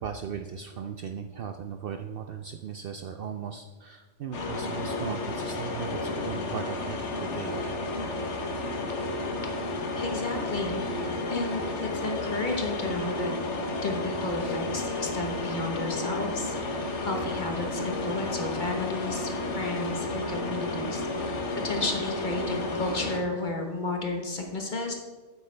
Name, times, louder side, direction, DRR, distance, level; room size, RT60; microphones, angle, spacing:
voice 1, 0.0-7.7, right 7 dB, 60° right, 6 dB, 0.6 m, -37 dB
sound 1, 4.3-23.2, left 2 dB, 65° left, 1.3 m, -32 dB
voice 2, 9.9-10.9 11.3-13.3 13.8-21.1 21.5-24.9, left 2 dB, 40° left, 2 dB, 1.2 m, -32 dB
8.6 x 8.3 x 3.3 m, 1.4 s
omnidirectional pair, 1.3 m